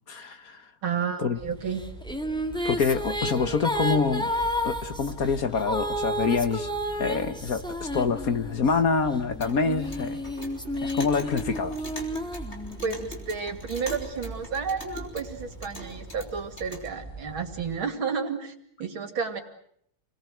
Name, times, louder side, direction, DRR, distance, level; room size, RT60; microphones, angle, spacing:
voice 1, 0.1-0.6 1.2-1.4 2.6-4.3 4.6-6.7 7.0-10.2 10.8-11.9, left 5 dB, 50° left, 10 dB, 1.5 m, -26 dB
voice 2, 0.8-1.8 12.8-18.5 18.8-19.4, right 6 dB, 75° right, 7 dB, 3.3 m, -31 dB
sound 1, 1.3-17.8, right 2 dB, 15° right, 4.2 m, -43 dB
sound 2, 1.7-8.7 9.4-13.1, equal, ahead, 2.1 m, -31 dB
Clock, 9.2-16.9, left 1 dB, 30° left, 4.9 m, -43 dB
28.5 x 21.0 x 8.0 m, 0.70 s
omnidirectional pair, 2.2 m